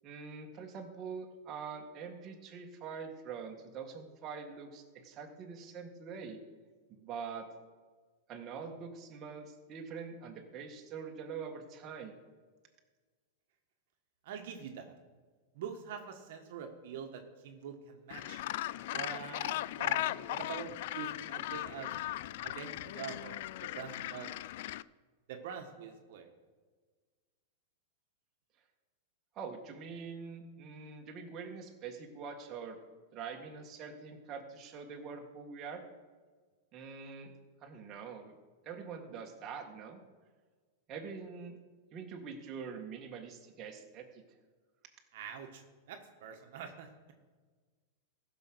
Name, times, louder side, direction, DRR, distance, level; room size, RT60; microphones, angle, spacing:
voice 1, 0.0-6.4 6.9-7.5 8.3-12.2 29.4-32.8 33.1-35.8 36.7-37.3 37.6-38.3 38.6-40.0 40.9-41.6 41.9-44.2, right 5 dB, 30° right, 2 dB, 1.8 m, -44 dB
voice 2, 14.2-14.9 15.5-18.4 18.9-21.9 22.4-24.3 25.3-26.3 45.1-45.6 45.9-47.1, right 7 dB, 65° right, 4 dB, 1.5 m, -45 dB
Gull seagull, 18.1-24.8, left 15 dB, 60° left, 0.3 m, -38 dB
15.0 x 6.4 x 6.3 m, 1.4 s
supercardioid pair, 140°, 0 cm